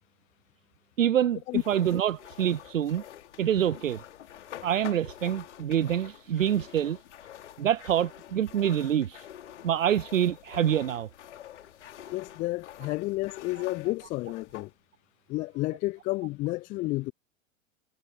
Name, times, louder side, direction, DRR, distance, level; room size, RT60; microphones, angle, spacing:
voice 1, 1.0-3.0 3.4-4.0 4.6-7.0 7.6-9.3 9.6-11.1, right 10 dB, 70° right, 0.7 m, -26 dB
sound 1, 1.5-14.7, left 11 dB, 60° left, 3.1 m, -47 dB
voice 2, 12.1-14.7 15.3-17.1, left 20 dB, 20° left, 0.5 m, -31 dB
figure-of-eight pair, 95°, 40 cm